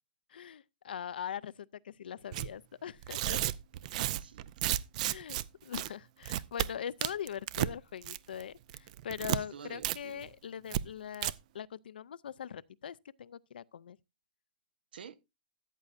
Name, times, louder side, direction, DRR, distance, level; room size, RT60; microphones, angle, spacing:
voice 1, 0.3-3.4 5.0-14.0, left 9 dB, 85° left, 0.4 m, -42 dB
Tearing, 2.3-2.5 3.0-5.4 5.7-5.9 6.2-6.7 7.0-7.7 8.0-8.4 8.7-9.4 9.8-10.0 10.2-10.3 10.7-10.8 11.1-11.3, right 13 dB, 50° right, 0.4 m, -32 dB
voice 2, 4.1-4.9 9.3-10.3 14.9-15.2, right 7 dB, 85° right, 0.8 m, -50 dB
13.5 x 8.3 x 2.5 m
hypercardioid pair, 145°, 5 cm